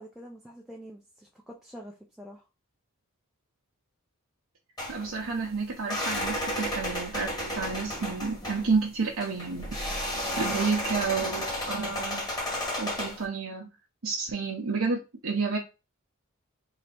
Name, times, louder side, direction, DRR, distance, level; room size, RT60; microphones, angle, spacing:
voice 1, 0.0-2.4, equal, ahead, 0.5 m, -46 dB
sound 1, 4.8-13.2, left 1 dB, 20° left, 1.7 m, -33 dB
voice 2, 4.9-12.2 12.8-13.7 14.0-15.6, right 4 dB, 65° right, 0.8 m, -30 dB
3.3 x 2.8 x 4.1 m
head